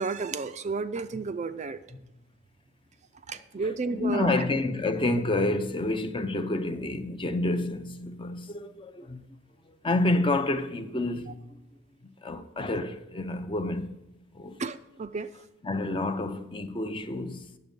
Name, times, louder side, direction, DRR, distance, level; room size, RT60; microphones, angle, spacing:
voice 1, 0.0-1.8 3.3-4.4 14.6-15.3, right 4 dB, 35° right, 0.4 m, -32 dB
voice 2, 3.6-9.2 9.7-11.5 12.2-14.0 14.3-14.6 15.6-17.6, left 2 dB, 25° left, 0.6 m, -29 dB
9.4 x 7.3 x 5.2 m
head